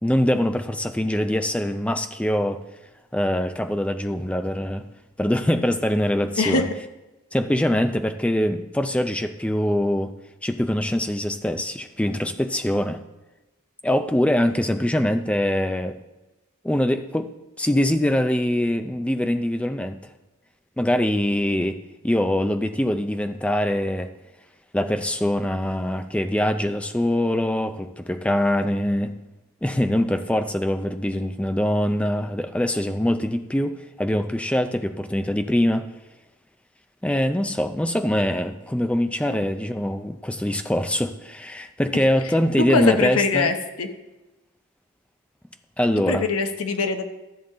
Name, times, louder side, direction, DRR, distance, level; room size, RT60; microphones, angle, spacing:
voice 1, 0.0-2.6 3.1-4.8 5.2-6.7 7.3-10.1 10.4-13.0 13.8-15.9 16.6-17.3 17.6-20.0 20.8-21.8 22.0-24.1 24.7-29.1 29.6-35.9 37.0-43.5 45.8-46.3, left 1 dB, 5° left, 8 dB, 0.4 m, -23 dB
voice 2, 42.7-43.9 46.1-47.0, left 4 dB, 70° left, 7 dB, 0.9 m, -22 dB
13.0 x 7.1 x 3.8 m, 1.1 s
head